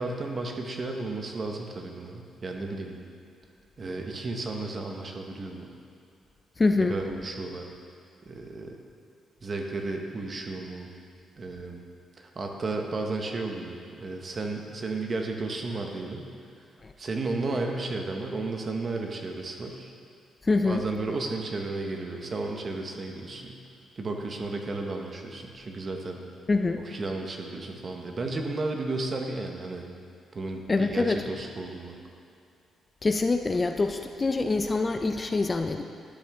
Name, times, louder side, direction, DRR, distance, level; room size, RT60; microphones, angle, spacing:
voice 1, 0.0-3.0 3.8-5.7 6.9-7.6 8.3-8.8 9.4-10.9 11.4-11.8 12.2-16.3 17.0-19.9 20.6-23.6 24.0-26.2 26.8-29.8 30.3-32.0, right 3 dB, 35° right, 2 dB, 1.0 m, -33 dB
voice 2, 6.6-6.9 16.8-16.9 20.4-20.8 26.5-26.8 30.7-31.2 33.0-35.8, left 3 dB, 25° left, 6 dB, 0.4 m, -25 dB
11.5 x 6.2 x 3.5 m, 2.5 s
cardioid pair, 105°, 0 cm